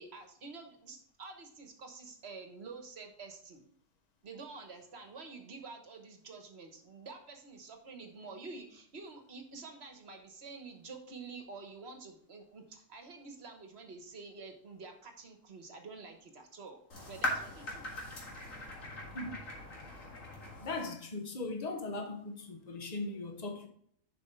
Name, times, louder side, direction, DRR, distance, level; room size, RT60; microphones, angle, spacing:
voice 1, 0.0-3.7 4.2-16.8 17.1-17.9, right 4 dB, 55° right, 1.3 m, -48 dB
sound 1, 16.9-20.9, left 1 dB, 90° left, 2.2 m, -40 dB
voice 2, 20.6-23.7, left 2 dB, 35° left, 1.0 m, -39 dB
7.1 x 5.4 x 4.4 m
omnidirectional pair, 1.3 m